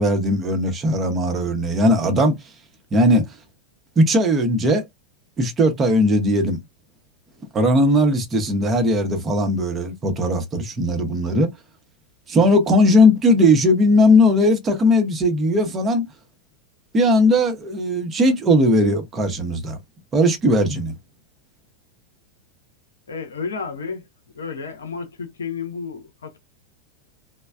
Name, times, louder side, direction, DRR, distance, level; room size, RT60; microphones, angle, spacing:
voice 1, 0.0-2.4 2.9-3.4 4.0-4.9 5.4-6.6 7.5-11.5 12.3-16.0 16.9-19.8 20.1-21.0, left 1 dB, 25° right, 0.8 m, -18 dB
voice 2, 23.1-24.1 24.3-26.4, left 5 dB, 70° left, 0.7 m, -31 dB
3.1 x 2.1 x 2.3 m
figure-of-eight pair, 90°, 0 cm